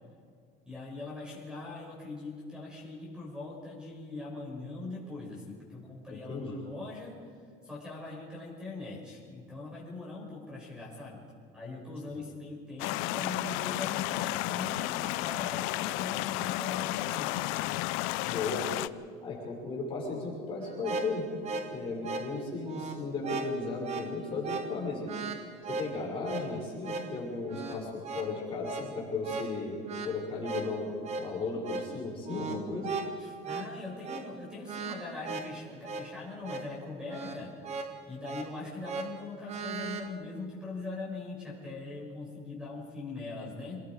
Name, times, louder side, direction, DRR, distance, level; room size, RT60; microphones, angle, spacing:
voice 1, 0.6-7.1 7.6-11.2 11.5-17.3 33.2-37.5 38.1-43.8, left 3 dB, 5° right, -4 dB, 6.4 m, -41 dB
voice 2, 6.1-6.6 12.1-12.2 18.3-18.7 19.2-21.3 21.7-25.1 25.7-32.9, left 3 dB, 25° left, -5 dB, 5.8 m, -35 dB
sound 1, 12.8-18.9, left 18 dB, 75° left, 0.6 m, -32 dB
sound 2, 20.6-40.1, right 4 dB, 30° right, 1.3 m, -39 dB
27.0 x 20.0 x 4.9 m, 2.2 s
cardioid pair, 160°, 21 cm